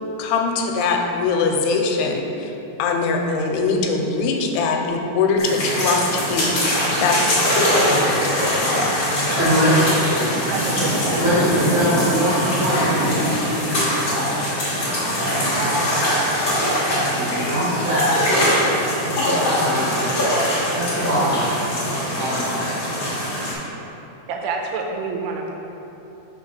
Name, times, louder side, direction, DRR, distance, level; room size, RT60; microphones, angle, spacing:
voice 1, 0.2-2.5 2.8-6.6 7.0-7.4 7.7-8.9, left 4 dB, 90° left, 2 dB, 2.7 m, -22 dB
sound 1, 5.4-23.5, equal, 50° left, 1.4 m, -22 dB
voice 2, 9.4-10.2 11.2-14.6 15.4-16.3 17.1-18.2 19.1-21.6 22.1-22.6, equal, 65° right, -12 dB, 1.3 m, -23 dB
voice 3, 10.1-11.2 24.3-25.5, right 4 dB, 90° right, 1 dB, 2.7 m, -28 dB
6.1 x 3.4 x 5.3 m, 3.0 s
omnidirectional pair, 4.7 m